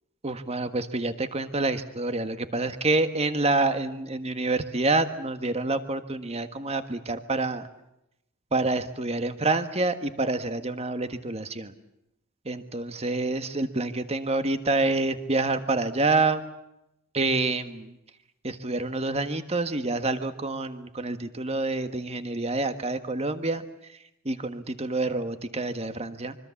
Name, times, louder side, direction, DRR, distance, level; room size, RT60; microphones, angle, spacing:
voice 1, 0.2-7.7 8.5-11.7 12.4-16.4 17.1-18.0 18.4-23.6 23.9-24.0 24.2-26.4, right 2 dB, 30° right, 9 dB, 1.5 m, -27 dB
25.0 x 24.5 x 7.2 m, 0.86 s
head